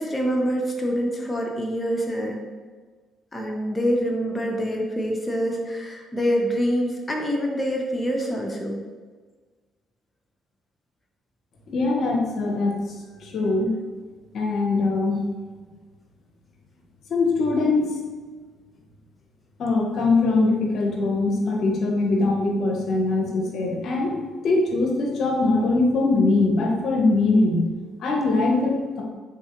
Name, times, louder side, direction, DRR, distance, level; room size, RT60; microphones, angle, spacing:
voice 1, 0.0-2.4 3.3-8.8, equal, 25° left, 0 dB, 0.6 m, -25 dB
voice 2, 11.7-12.8 13.2-13.7 14.3-15.2 17.1-17.9 19.6-24.2 24.4-27.7 28.0-29.0, left 3 dB, 65° left, -1 dB, 0.6 m, -22 dB
3.5 x 2.3 x 2.9 m, 1.4 s
supercardioid pair, 60°, 0 cm